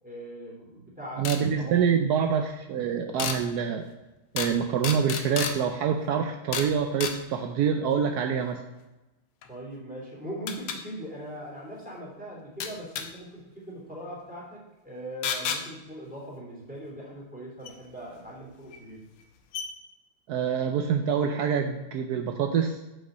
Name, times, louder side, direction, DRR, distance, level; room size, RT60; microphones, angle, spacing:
voice 1, 0.0-2.0 9.5-19.0, equal, 5° right, -5 dB, 2.6 m, -40 dB
sound 1, 1.2-1.4 3.2-3.4 4.4-4.6 4.8-5.6 6.5-6.7 7.0-7.2 9.4-9.5 10.5-10.8 12.6-13.1 15.2-15.6 17.7-17.8 18.7-18.8 19.2-19.3 19.5-19.7, left 7 dB, 90° left, 1.8 m, -30 dB
voice 2, 1.2-3.8 4.3-8.6 20.3-22.8, right 7 dB, 80° right, 5 dB, 0.8 m, -26 dB
8.4 x 5.7 x 5.0 m, 1.0 s
omnidirectional pair, 2.4 m